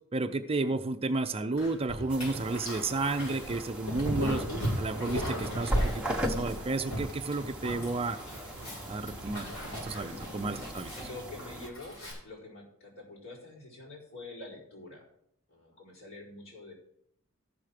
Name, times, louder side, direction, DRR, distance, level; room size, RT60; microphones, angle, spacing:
voice 1, 0.1-4.4 4.8-8.2 8.9-10.9, right 3 dB, 25° right, 8 dB, 0.5 m, -32 dB
Dog, 1.6-12.1, equal, 85° left, 5.4 m, -38 dB
sound 1, 2.1-11.7, equal, 5° right, 1.0 m, -37 dB
voice 2, 11.0-15.1 15.5-16.7, left 2 dB, 60° left, -6 dB, 4.4 m, -47 dB
14.0 x 6.1 x 5.0 m, 0.73 s
head